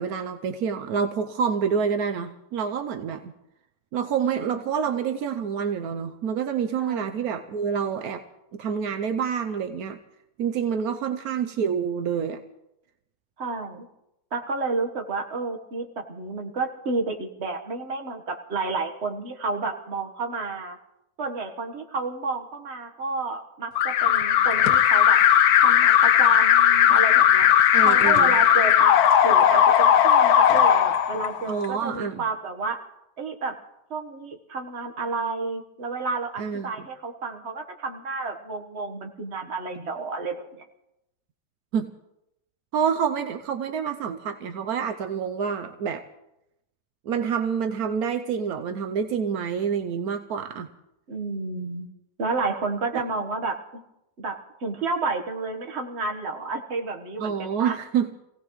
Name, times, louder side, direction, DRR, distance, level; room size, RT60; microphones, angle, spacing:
voice 1, 0.0-3.3 3.9-8.2 8.5-10.0 10.4-12.4 27.7-28.4 31.5-32.2 36.4-36.7 41.7-41.9 42.7-46.0 47.0-50.7 52.9-53.0 57.2-58.2, right 7 dB, 80° right, 7 dB, 1.2 m, -27 dB
voice 2, 13.4-13.9 14.3-20.8 21.2-25.2 25.6-27.5 27.8-29.0 29.2-32.8 33.2-33.6 33.9-40.7 51.1-51.9 52.2-53.8 54.2-57.8, right 3 dB, 50° right, 3 dB, 1.6 m, -30 dB
Alarm, 23.8-31.7, left 10 dB, 90° left, 1.3 m, -17 dB
27.0 x 17.0 x 3.1 m, 0.87 s
omnidirectional pair, 1.6 m